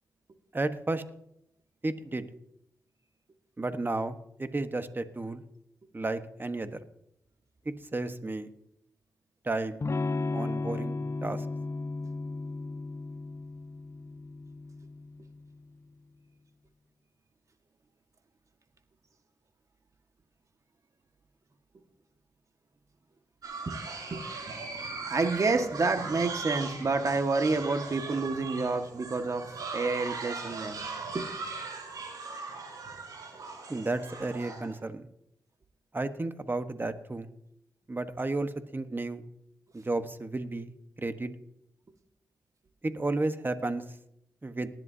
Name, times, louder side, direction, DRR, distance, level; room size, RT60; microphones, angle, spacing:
voice 1, 0.5-1.0 1.8-2.2 3.6-5.4 5.9-6.8 7.6-8.5 9.4-9.8 10.3-11.0 11.2-11.4 33.7-35.1 35.9-37.3 37.9-39.2 39.7-40.7 41.0-41.3 42.8-43.8 44.4-44.7, right 2 dB, 30° right, 10 dB, 1.3 m, -32 dB
Electric guitar / Strum, 9.8-15.5, left 3 dB, 45° left, 0.7 m, -35 dB
sound 1, 23.4-34.8, right 4 dB, 75° right, 5.7 m, -39 dB
voice 2, 24.1-30.8 31.1-31.3, right 3 dB, 55° right, 6 dB, 1.7 m, -29 dB
19.0 x 11.0 x 2.8 m, 0.75 s
supercardioid pair, 45°, 7 cm